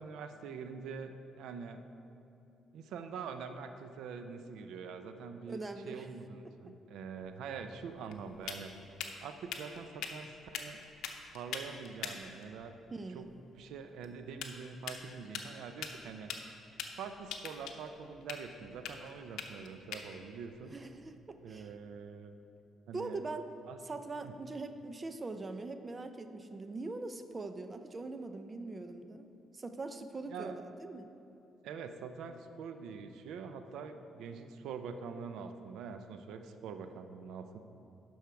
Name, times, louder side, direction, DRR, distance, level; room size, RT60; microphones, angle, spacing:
voice 1, 0.0-1.8 2.7-8.7 9.2-10.8 11.3-12.7 13.1-13.3 13.6-16.3 17.0-20.7 21.4-22.4 22.9-23.2 23.7-23.8 24.2-24.3 30.3-30.5 31.6-37.6, right 6 dB, 85° right, 8 dB, 0.6 m, -44 dB
voice 2, 5.5-6.1 6.6-6.7 12.9-13.4 20.7-21.7 22.9-23.5 23.8-31.1, right 3 dB, 30° right, 8 dB, 0.6 m, -42 dB
bottle cap, 7.2-21.9, left 7 dB, 85° left, 0.7 m, -46 dB
10.5 x 6.3 x 4.6 m, 2.9 s
cardioid pair, 90°, 0 cm